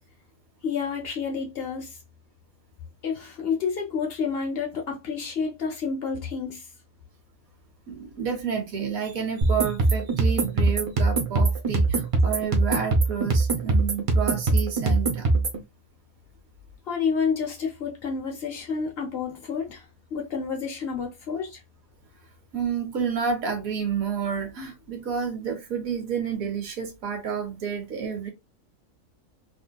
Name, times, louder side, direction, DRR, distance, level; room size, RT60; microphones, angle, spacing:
voice 1, 0.6-2.0 3.0-6.7 16.9-19.9 20.1-21.6, left 5 dB, 50° left, 1.0 m, -29 dB
voice 2, 7.9-15.3 22.5-28.3, right 6 dB, 80° right, 1.3 m, -30 dB
sound 1, 9.4-15.6, right 3 dB, 50° right, 0.4 m, -22 dB
2.7 x 2.6 x 2.2 m
omnidirectional pair, 1.5 m